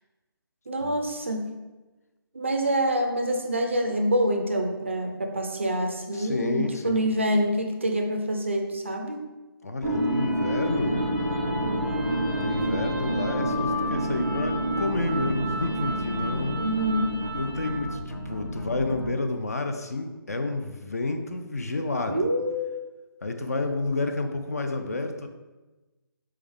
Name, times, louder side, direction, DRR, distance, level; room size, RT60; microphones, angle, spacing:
voice 1, 0.7-1.5 2.3-9.3 16.5-17.1 22.1-22.8, right 1 dB, 30° right, 4 dB, 0.4 m, -26 dB
voice 2, 6.1-7.1 9.6-11.0 12.4-16.6 17.3-22.3 23.2-25.3, left 2 dB, 40° left, 6 dB, 0.4 m, -30 dB
sound 1, 9.8-18.0, right 1 dB, 15° left, 1.0 m, -28 dB
sound 2, 10.6-19.1, left 1 dB, 90° left, 0.7 m, -35 dB
4.2 x 3.5 x 3.5 m, 1.1 s
hypercardioid pair, 180°, 13 cm